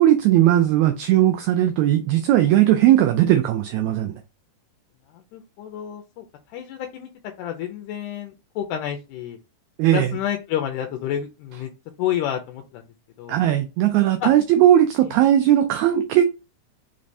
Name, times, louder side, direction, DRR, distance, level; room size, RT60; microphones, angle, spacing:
voice 1, 0.0-4.1 9.8-10.1 13.3-16.2, right 12 dB, 90° right, 1.6 m, -18 dB
voice 2, 5.1-7.1 7.4-9.4 9.9-11.7 12.0-12.8 13.2-13.4 14.2-14.3 15.0-15.1, left 10 dB, 80° left, 2.0 m, -29 dB
5.2 x 3.1 x 2.6 m
omnidirectional pair, 3.8 m